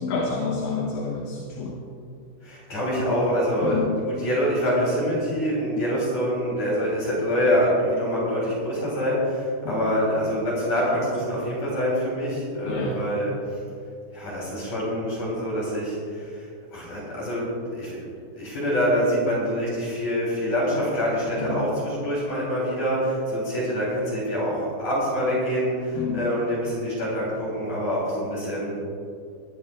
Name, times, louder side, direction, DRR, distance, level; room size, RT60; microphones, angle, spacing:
voice 1, 0.0-1.8 3.6-3.9 9.6-9.9 12.7-13.0 21.4-21.6 26.0-26.2, left 4 dB, 75° left, -2 dB, 3.3 m, -28 dB
voice 2, 2.4-13.6 14.1-18.1 18.4-28.8, equal, 40° left, -6 dB, 4.2 m, -25 dB
21.5 x 12.5 x 2.4 m, 2.4 s
omnidirectional pair, 5.8 m